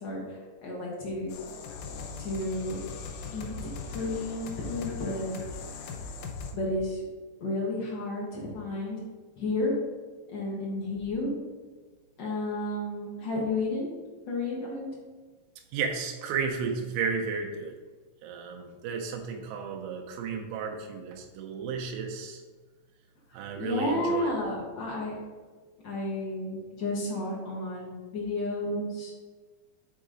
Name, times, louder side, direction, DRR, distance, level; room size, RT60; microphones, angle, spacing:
voice 1, 0.0-1.3 2.2-2.8 3.3-5.4 6.5-7.0 7.4-9.0 9.4-9.7 10.3-11.3 12.2-13.9 14.3-14.9 23.3-25.2 25.8-29.2, left 2 dB, 60° left, -4 dB, 1.1 m, -32 dB
sound 1, 1.3-6.5, left 4 dB, 80° left, 2.1 m, -39 dB
voice 2, 15.7-17.7 18.2-22.4 23.3-24.3, right 5 dB, 90° right, 1 dB, 2.4 m, -33 dB
6.2 x 3.8 x 4.9 m, 1.3 s
omnidirectional pair, 3.9 m